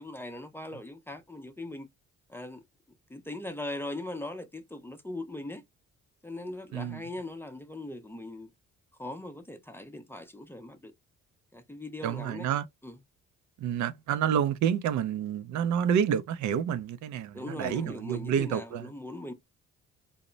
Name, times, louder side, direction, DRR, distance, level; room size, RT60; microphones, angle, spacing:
voice 1, 0.0-1.9 2.3-2.6 3.1-5.6 6.2-8.5 9.0-10.9 11.5-12.5 12.8-13.0 17.3-19.3, left 2 dB, 10° left, 0.5 m, -40 dB
voice 2, 12.0-12.6 13.6-18.9, right 8 dB, 70° right, 0.4 m, -29 dB
2.1 x 2.0 x 3.7 m
cardioid pair, 90°, 30 cm